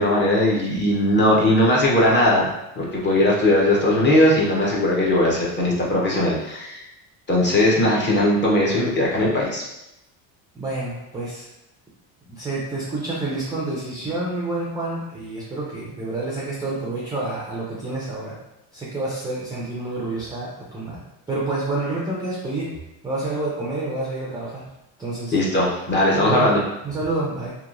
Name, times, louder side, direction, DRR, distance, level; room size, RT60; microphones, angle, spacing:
voice 1, 0.0-2.5 2.8-6.8 7.3-9.6 25.3-26.6, left 1 dB, 25° left, -4 dB, 0.6 m, -19 dB
voice 2, 10.5-11.5 12.2-18.4 18.7-21.0 21.3-22.7 23.0-24.6 25.0-25.3 26.1-26.5 26.8-27.5, right 2 dB, 10° right, -6 dB, 0.3 m, -28 dB
2.9 x 2.2 x 2.4 m, 0.89 s
supercardioid pair, 110°, 45 cm